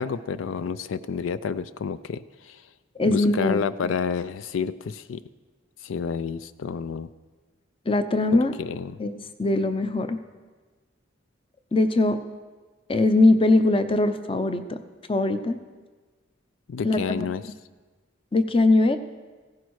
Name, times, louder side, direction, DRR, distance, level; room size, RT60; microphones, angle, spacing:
voice 1, 0.0-2.7 3.0-5.2 5.8-7.1 8.3-9.0 16.7-17.4, left 6 dB, 85° left, 15 dB, 0.4 m, -30 dB
voice 2, 3.0-3.6 7.9-8.6 9.0-10.2 11.7-12.2 12.9-14.8 15.1-15.6 16.8-17.2 18.3-19.0, left 2 dB, 30° left, 10 dB, 0.7 m, -21 dB
16.0 x 10.5 x 4.7 m, 1.3 s
head